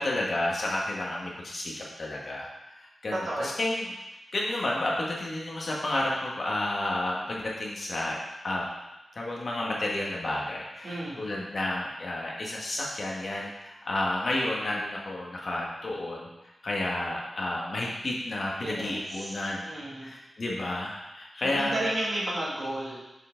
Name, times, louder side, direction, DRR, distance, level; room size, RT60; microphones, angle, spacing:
voice 1, 0.0-2.5 3.0-3.8 4.3-8.2 8.4-8.7 9.1-16.3 16.6-19.7 20.0-21.9, left 1 dB, 50° left, -3 dB, 1.2 m, -31 dB
voice 2, 3.1-3.6 10.8-11.3 18.6-20.1 21.4-23.0, right 1 dB, 55° right, -6 dB, 1.9 m, -33 dB
6.6 x 4.6 x 3.7 m, 0.98 s
wide cardioid pair, 125°, 0 cm